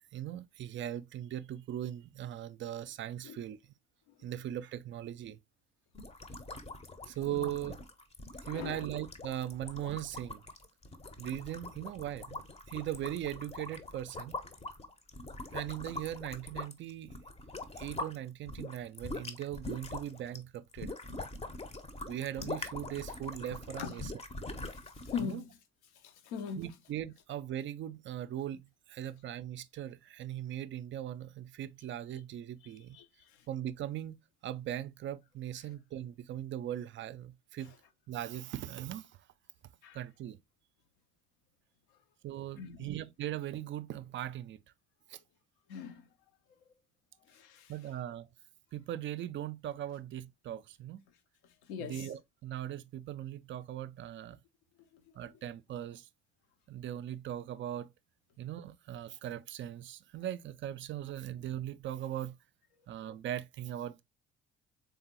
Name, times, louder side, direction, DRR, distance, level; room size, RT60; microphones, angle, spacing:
voice 1, 0.1-3.6 4.2-5.4 7.1-7.8 8.4-10.4 11.2-12.4 12.7-14.4 15.5-17.1 17.7-20.9 22.1-24.1 25.2-25.4 26.6-33.0 33.5-37.8 38.1-39.1 39.9-40.4 42.2-44.6 45.1-45.2 47.7-48.3 48.7-51.0 51.8-54.4 55.2-56.1 56.7-57.9 58.4-62.3 62.9-64.0, right 11 dB, 35° right, 0.4 m, -39 dB
sound 1, 5.9-18.2 18.5-25.4, left 2 dB, 20° left, 0.6 m, -43 dB
voice 2, 8.5-8.8 23.8-24.0 24.7-25.5 26.0-26.6 32.9-33.4 39.8-40.0 42.6-42.9 45.7-46.1 47.3-47.7 51.6-52.1, left 6 dB, 70° left, 0.7 m, -41 dB
3.6 x 3.4 x 2.8 m
figure-of-eight pair, 45°, 35 cm